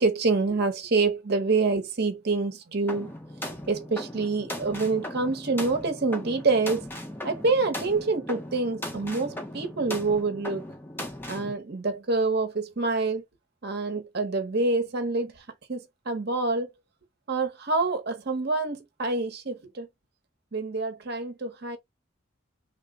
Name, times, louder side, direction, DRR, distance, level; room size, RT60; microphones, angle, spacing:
voice 1, 0.0-3.1 3.7-6.9 7.2-10.7 11.3-13.2 13.6-15.4 15.7-16.7 17.3-19.9 20.5-21.8, right 3 dB, 50° right, 0.7 m, -27 dB
sound 1, 2.9-11.5, left 1 dB, 10° left, 0.5 m, -38 dB
3.2 x 2.0 x 3.4 m
head